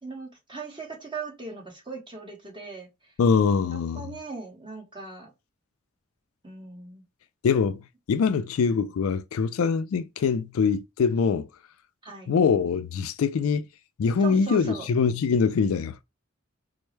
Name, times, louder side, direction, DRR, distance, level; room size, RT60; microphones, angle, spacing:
voice 1, 0.0-3.1 3.7-5.3 6.4-7.0 12.0-12.3 14.2-14.9, right 4 dB, 20° right, 1.2 m, -39 dB
voice 2, 3.2-4.1 7.4-7.8 8.1-11.5 12.3-13.7 14.0-16.0, left 5 dB, 75° left, 0.4 m, -23 dB
4.4 x 2.0 x 3.1 m
head